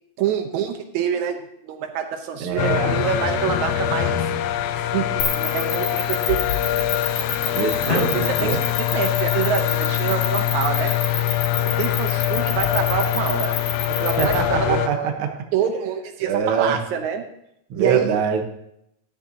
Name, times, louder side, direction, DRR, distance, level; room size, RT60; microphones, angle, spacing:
voice 1, 0.2-1.4 1.6-4.2 4.9-6.4 7.9-8.6 8.9-10.9 11.6-13.6 13.9-15.1 15.5-17.2 17.8-18.1, right 8 dB, 80° right, 6 dB, 2.1 m, -26 dB
voice 2, 2.4-3.0 7.5-8.6 14.2-15.3 16.2-16.8 17.7-18.4, right 6 dB, 60° right, 4 dB, 1.7 m, -24 dB
sound 1, 2.6-14.9, left 12 dB, 85° left, 2.0 m, -23 dB
sound 2, 5.2-14.3, left 7 dB, 60° left, 2.3 m, -27 dB
12.5 x 9.9 x 2.8 m, 0.77 s
omnidirectional pair, 3.4 m